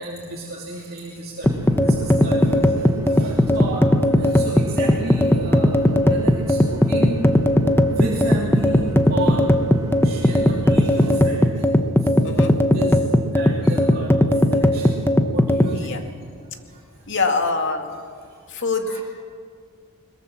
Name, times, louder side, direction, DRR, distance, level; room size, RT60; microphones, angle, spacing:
voice 1, 0.0-3.8 4.2-7.2 8.0-8.8 9.1-9.4 10.0-11.7 12.0-13.0 13.3-16.1 16.7-16.8 18.3-18.4 18.8-19.0, right 2 dB, 45° right, -4 dB, 2.9 m, -33 dB
sound 1, 1.4-15.7, left 1 dB, 10° left, 0.9 m, -17 dB
sound 2, 1.4-11.2, equal, 15° right, 1.8 m, -34 dB
voice 2, 12.2-12.6 15.7-16.0 17.1-17.9 18.5-19.0, left 3 dB, 55° left, 5 dB, 2.2 m, -24 dB
21.5 x 21.5 x 7.3 m, 2.1 s
head